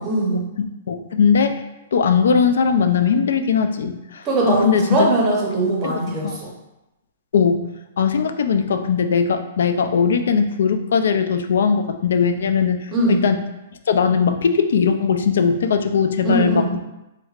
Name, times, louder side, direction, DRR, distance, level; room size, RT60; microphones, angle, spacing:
voice 1, 0.0-0.4 4.2-6.5 12.9-13.2 16.2-16.7, right 2 dB, 20° right, -3 dB, 0.7 m, -20 dB
voice 2, 0.6-1.6 1.9-5.1 5.8-6.4 7.3-7.6 8.0-13.4 13.9-16.8, left 6 dB, 75° left, 8 dB, 0.3 m, -19 dB
3.3 x 3.1 x 2.4 m, 0.95 s
hypercardioid pair, 175°, 0 cm